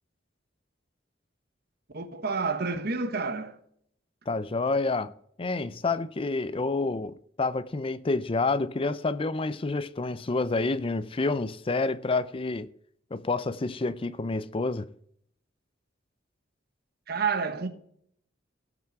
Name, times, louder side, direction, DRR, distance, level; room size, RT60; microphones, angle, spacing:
voice 1, 1.9-3.6 17.1-17.7, right 4 dB, 55° right, 1.3 m, -29 dB
voice 2, 4.3-5.1 5.4-12.7 13.1-14.9, left 3 dB, 30° left, 0.5 m, -28 dB
17.5 x 6.0 x 4.6 m
head